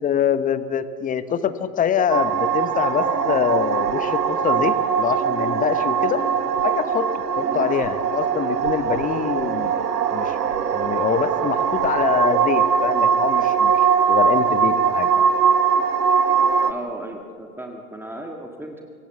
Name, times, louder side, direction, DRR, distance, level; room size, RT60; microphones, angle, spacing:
voice 1, 0.0-6.2 6.6-7.1 7.4-9.7 10.1-10.4 10.7-13.7 14.1-15.1, left 8 dB, 15° left, 13 dB, 1.0 m, -24 dB
sound 1, 2.1-16.7, right 7 dB, 70° right, 1.3 m, -21 dB
voice 2, 16.6-18.9, right 1 dB, 5° right, 2 dB, 1.7 m, -36 dB
25.0 x 23.0 x 7.0 m, 2.1 s
figure-of-eight pair, 100°, 49 cm